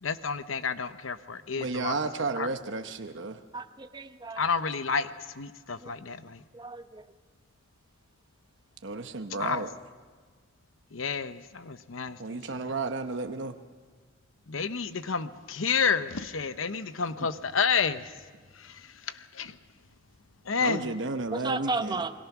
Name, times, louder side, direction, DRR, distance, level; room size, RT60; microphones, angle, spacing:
voice 1, 0.0-2.0 2.4-2.5 4.4-6.4 9.4-9.6 10.9-12.7 14.5-18.1 18.5-19.6 20.4-21.0, left 5 dB, 90° left, 12 dB, 0.9 m, -30 dB
voice 2, 1.6-3.4 8.8-9.7 12.2-13.6 20.6-22.0, right 3 dB, 65° right, 7 dB, 1.0 m, -32 dB
voice 3, 3.5-4.4 5.8-5.9 6.5-7.0 21.3-22.1, right 3 dB, 20° right, 9 dB, 0.8 m, -33 dB
28.0 x 21.5 x 6.0 m, 1.5 s
head